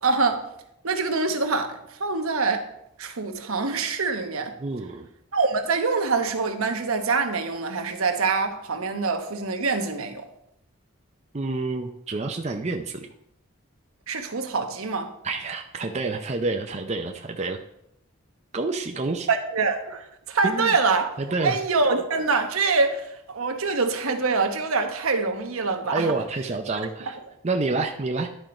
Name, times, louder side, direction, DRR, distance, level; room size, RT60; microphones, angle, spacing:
voice 1, 0.0-0.5 0.8-2.7 3.0-4.5 5.3-10.3 14.1-15.1 19.3-21.1 21.4-26.0, right 4 dB, 80° right, 1.0 m, -25 dB
voice 2, 4.6-5.1 11.3-13.1 15.2-17.6 18.5-19.3 20.4-20.8 21.2-21.6 25.9-27.2 27.4-28.3, right 3 dB, 30° right, 0.5 m, -28 dB
11.0 x 4.5 x 5.2 m
head